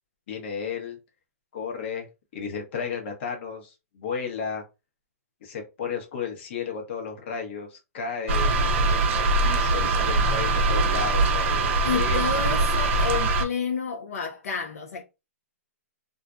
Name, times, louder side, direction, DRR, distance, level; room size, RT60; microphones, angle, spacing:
voice 1, 0.3-1.0 1.5-4.6 5.4-11.6 11.9-12.2 12.5-12.7, left 6 dB, 50° left, 0.9 m, -33 dB
sound 1, 8.3-13.4, right 3 dB, 50° right, 0.5 m, -22 dB
voice 2, 11.8-15.0, left 6 dB, 70° left, 0.5 m, -30 dB
2.4 x 2.1 x 2.4 m
hypercardioid pair, 145°, 8 cm